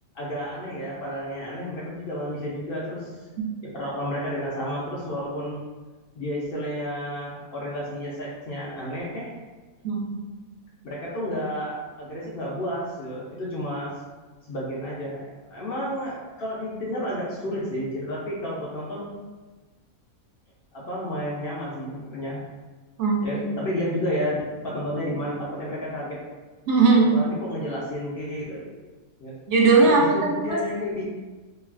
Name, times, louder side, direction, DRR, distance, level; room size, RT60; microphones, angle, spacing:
voice 1, 0.1-3.3 3.7-5.6 6.2-9.3 10.8-13.9 14.5-19.1 20.7-22.4 23.2-26.2 27.0-28.6 29.2-29.3 29.8-31.0, equal, 65° left, -6 dB, 0.5 m, -31 dB
voice 2, 9.8-10.2 23.0-23.4 26.7-27.2 29.5-30.6, right 4 dB, 65° right, -2 dB, 0.7 m, -19 dB
3.0 x 2.3 x 2.4 m, 1.3 s
omnidirectional pair, 1.5 m